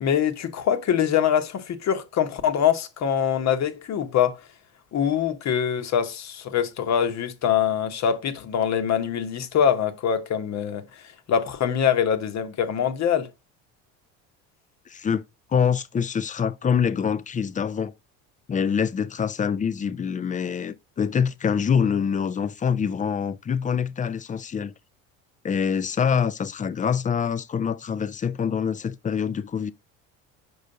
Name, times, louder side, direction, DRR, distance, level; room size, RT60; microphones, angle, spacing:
voice 1, 0.0-4.4 4.9-10.9 11.3-13.3, left 8 dB, 45° left, 1.1 m, -24 dB
voice 2, 14.9-15.2 15.5-17.9 18.5-24.7 25.4-29.7, left 7 dB, 20° left, 0.5 m, -25 dB
5.5 x 4.9 x 3.8 m
supercardioid pair, 80°, 37 cm